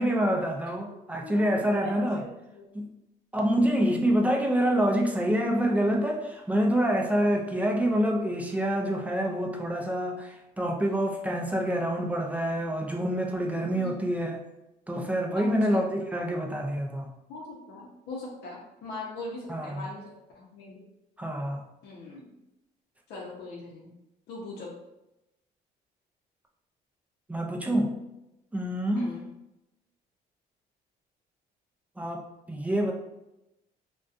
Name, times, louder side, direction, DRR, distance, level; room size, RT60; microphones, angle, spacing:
voice 1, 0.0-2.2 2.7-2.9 3.3-14.4 14.9-17.1 19.5-19.9 21.2-21.6 27.3-28.0 28.5-29.2 32.0-32.9, equal, 10° right, 1 dB, 0.4 m, -27 dB
voice 2, 1.2-2.7 13.7-14.0 15.4-15.8 17.3-20.8 21.8-22.3 23.1-23.9 24.3-24.8 28.9-29.3, left 2 dB, 75° left, -3 dB, 0.6 m, -41 dB
2.5 x 2.2 x 2.4 m, 0.92 s
cardioid pair, 110°, 17 cm